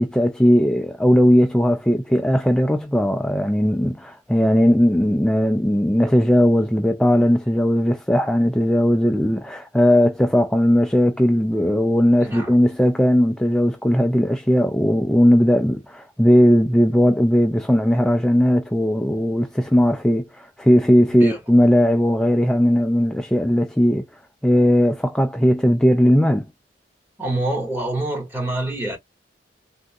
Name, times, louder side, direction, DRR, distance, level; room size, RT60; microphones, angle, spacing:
voice 1, 0.0-24.1 24.4-26.5, equal, 5° left, 0.3 m, -18 dB
voice 2, 12.2-12.5 21.1-21.4 27.2-29.0, right 2 dB, 10° right, 1.7 m, -26 dB
3.7 x 2.5 x 2.3 m
head